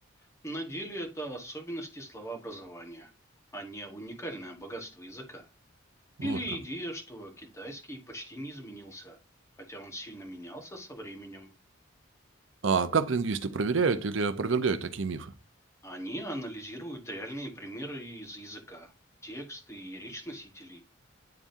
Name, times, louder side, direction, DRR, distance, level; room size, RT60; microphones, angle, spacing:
voice 1, 0.4-3.1 3.5-5.4 6.2-9.2 9.6-11.5 15.8-18.9 19.2-20.8, right 1 dB, 15° left, 1.4 m, -40 dB
voice 2, 12.6-15.3, right 4 dB, 70° right, 0.7 m, -27 dB
10.5 x 3.6 x 2.6 m
head